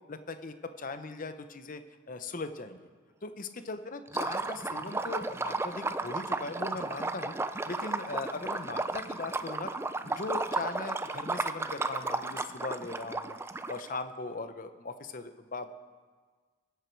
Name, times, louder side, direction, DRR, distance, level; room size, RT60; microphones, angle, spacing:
voice 1, 0.1-1.8 2.1-2.8 3.2-7.3 7.7-9.7 10.0-13.4 13.7-15.7, left 3 dB, 40° left, 10 dB, 0.7 m, -39 dB
Liquid, 4.1-14.0, right 3 dB, 10° right, 0.3 m, -34 dB
22.0 x 8.2 x 4.6 m, 1.5 s
head